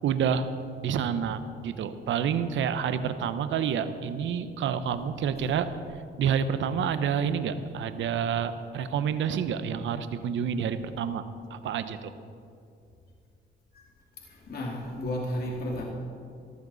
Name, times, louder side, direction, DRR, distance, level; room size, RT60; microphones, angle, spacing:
voice 1, 0.0-0.5 0.8-5.7 6.2-11.2 11.5-12.1, right 7 dB, 70° right, 11 dB, 0.9 m, -28 dB
voice 2, 14.2-15.8, left 1 dB, 50° left, -1 dB, 2.2 m, -33 dB
18.0 x 14.0 x 4.1 m, 2.4 s
cardioid pair, 90°, 20 cm